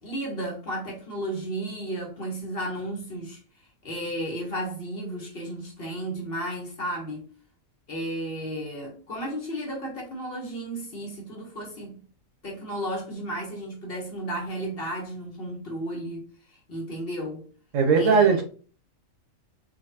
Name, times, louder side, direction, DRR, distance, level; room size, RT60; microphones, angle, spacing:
voice 1, 0.0-3.4 3.8-7.3 7.9-12.0 12.4-17.5 18.0-18.4, right 1 dB, 50° left, 1.1 m, -33 dB
voice 2, 17.7-18.4, right 5 dB, 70° right, 1.1 m, -19 dB
3.8 x 2.5 x 2.7 m
omnidirectional pair, 1.4 m